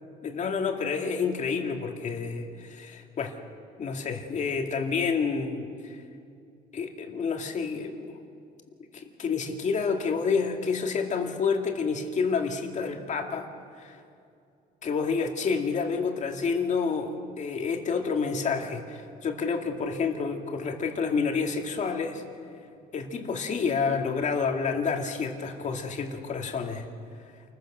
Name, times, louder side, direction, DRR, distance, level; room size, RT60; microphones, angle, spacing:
voice 1, 0.2-3.4 3.8-6.0 6.7-8.2 8.9-13.5 13.8-14.0 14.8-22.2 22.9-26.9, left 5 dB, 45° left, 3 dB, 2.3 m, -29 dB
28.0 x 15.5 x 6.5 m, 2.5 s
cardioid pair, 110°, 17 cm